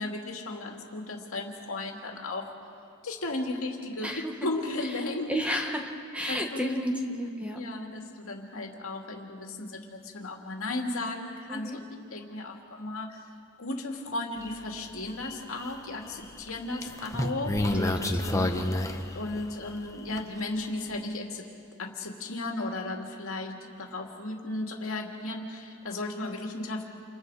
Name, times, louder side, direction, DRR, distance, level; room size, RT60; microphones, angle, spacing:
voice 1, 0.0-2.5 3.0-4.1 4.4-5.3 6.3-6.7 7.5-11.8 12.1-13.2 13.6-17.8 18.2-18.8 19.1-21.4 21.8-26.9, left 2 dB, 70° left, 1 dB, 2.6 m, -35 dB
voice 2, 4.0-4.3 5.3-7.6 11.5-11.8 17.7-18.7, equal, 5° right, 2 dB, 1.6 m, -32 dB
sound 1, 14.4-14.5 15.0-15.7 16.5-19.7 20.2-20.3, left 1 dB, 15° left, 1.2 m, -29 dB
29.5 x 29.0 x 5.0 m, 2.5 s
head